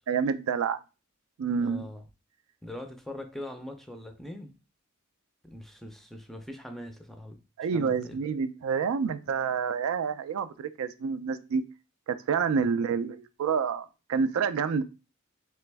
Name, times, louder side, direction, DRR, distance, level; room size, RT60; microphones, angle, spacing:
voice 1, 0.1-0.8 1.4-1.8 7.6-11.6 12.1-14.8, right 6 dB, 75° right, 0.3 m, -28 dB
voice 2, 1.6-2.0 2.6-4.5 5.5-7.4 7.7-8.2 12.6-12.9, left 1 dB, ahead, 0.4 m, -42 dB
3.3 x 3.0 x 3.3 m
head